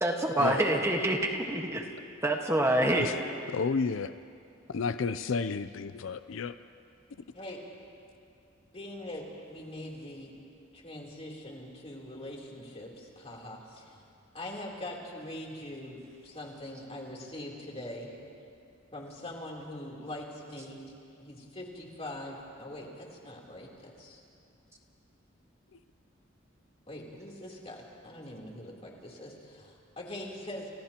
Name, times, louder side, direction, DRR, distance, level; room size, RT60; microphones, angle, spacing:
voice 1, 0.0-1.8 2.2-3.1, right 1 dB, 15° right, 1 dB, 1.4 m, -26 dB
voice 2, 3.5-4.1 4.7-6.5, left 5 dB, 85° left, 12 dB, 0.5 m, -31 dB
voice 3, 8.7-10.3 10.7-14.0 14.3-18.1 18.9-20.8 21.2-24.2 26.9-27.8 28.0-30.7, left 1 dB, 30° left, -2 dB, 3.4 m, -42 dB
30.0 x 29.5 x 3.0 m, 2.5 s
head